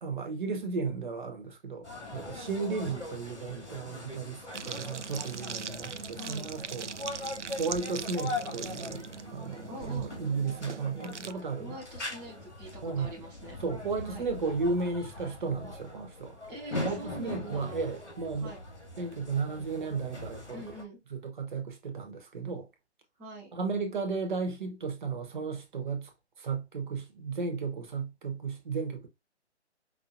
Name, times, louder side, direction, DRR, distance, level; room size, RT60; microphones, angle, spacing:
voice 1, 0.0-6.9 7.6-11.7 12.8-13.1 13.6-16.4 16.8-18.5 19.0-20.6 21.1-22.7 23.5-26.1 26.4-29.1, right 4 dB, 45° right, 1.3 m, -34 dB
sound 1, 1.8-20.8, left 2 dB, 85° left, 2.1 m, -41 dB
sound 2, 4.5-11.3, right 6 dB, 85° right, 0.5 m, -41 dB
voice 2, 6.1-6.5 9.7-10.1 11.6-13.6 14.0-14.2 16.5-17.9 18.4-18.6 20.5-21.0 23.2-23.5, equal, 5° right, 0.7 m, -44 dB
5.3 x 2.9 x 2.6 m
figure-of-eight pair, 135°, 34 cm